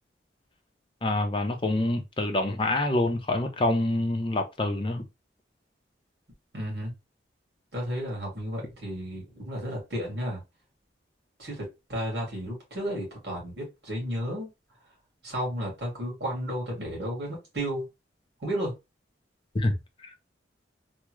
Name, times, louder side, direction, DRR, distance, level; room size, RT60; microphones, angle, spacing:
voice 1, 1.0-5.0 19.5-20.2, left 2 dB, 25° left, 0.5 m, -27 dB
voice 2, 6.5-6.9 7.7-10.4 11.4-14.5 15.2-17.9 18.4-18.7, equal, 60° right, 1.9 m, -33 dB
3.5 x 2.0 x 3.0 m
head